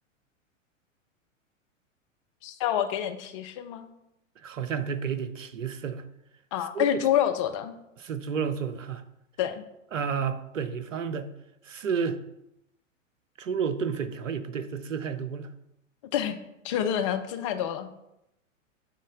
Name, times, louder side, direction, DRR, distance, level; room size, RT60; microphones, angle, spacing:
voice 1, 2.4-3.9 6.5-7.7 9.4-9.7 16.1-16.3 16.6-17.9, left 10 dB, 25° left, 8 dB, 0.4 m, -27 dB
voice 2, 4.4-6.0 6.7-7.0 8.0-9.0 9.9-11.3 11.7-12.2 13.4-15.5, right 6 dB, 75° right, 11 dB, 0.7 m, -31 dB
6.6 x 3.2 x 5.0 m, 0.84 s
figure-of-eight pair, 100°, 39 cm